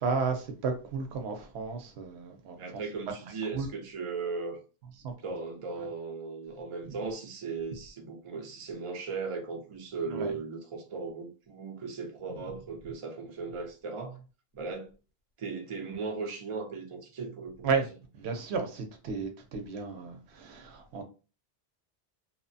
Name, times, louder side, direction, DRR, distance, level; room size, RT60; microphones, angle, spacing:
voice 1, 0.0-2.6 3.5-3.7 5.0-5.1 10.1-10.3 17.6-17.9 18.1-21.0, right 5 dB, 85° right, 0.9 m, -33 dB
voice 2, 2.6-4.6 5.2-14.2 14.5-14.9 15.4-17.7, right 4 dB, 40° right, 0.5 m, -37 dB
2.9 x 2.1 x 2.6 m
omnidirectional pair, 1.1 m